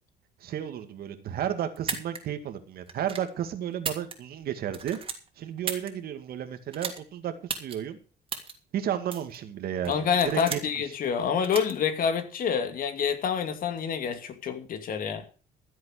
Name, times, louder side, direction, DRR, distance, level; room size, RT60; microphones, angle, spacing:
voice 1, 0.4-5.0 5.4-8.0 8.7-9.9 10.3-10.6, right 10 dB, 65° right, 2.2 m, -32 dB
sound 1, 1.8-2.2 2.9-3.3 3.7-4.4 4.7-5.9 6.7-7.0 7.5-7.8 8.3-8.5 9.1-9.4 9.8-10.8 11.4-11.7, right 5 dB, 30° right, 2.9 m, -34 dB
voice 2, 9.9-15.2, left 7 dB, 55° left, 2.6 m, -27 dB
14.5 x 7.8 x 6.6 m
cardioid pair, 110°, 17 cm